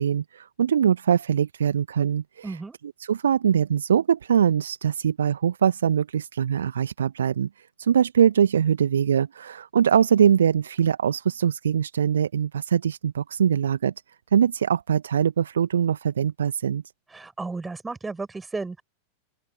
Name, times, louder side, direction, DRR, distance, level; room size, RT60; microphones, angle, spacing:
voice 1, 0.0-2.6 3.0-13.9 14.3-16.8, right 8 dB, 65° right, 1.4 m, -22 dB
voice 2, 2.4-2.8 17.1-18.8, right 3 dB, 10° right, 7.6 m, -33 dB
open air
figure-of-eight pair, 90°, 0 cm